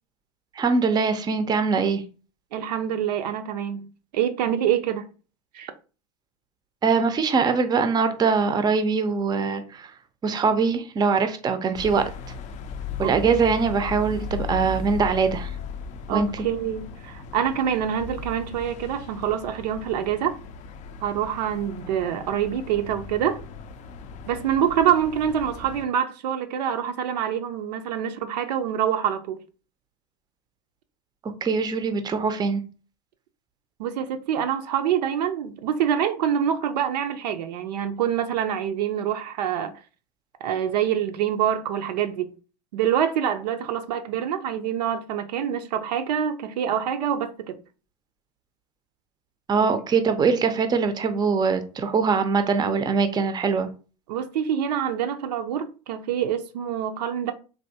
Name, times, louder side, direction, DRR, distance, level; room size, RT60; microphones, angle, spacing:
voice 1, 0.6-2.0 6.8-9.9 10.2-12.0 13.0-15.5 16.1-16.3 31.4-32.6 49.5-53.7, right 5 dB, 20° right, 0.5 m, -22 dB
voice 2, 2.5-5.0 5.5-5.7 13.0-13.5 16.1-20.4 21.0-23.4 24.3-29.4 33.8-39.8 40.4-42.3 42.7-47.6 54.1-57.3, right 9 dB, 75° right, 0.5 m, -26 dB
sound 1, 11.7-25.8, left 5 dB, 35° left, 0.4 m, -37 dB
3.4 x 2.6 x 2.7 m
hypercardioid pair, 90°, 21 cm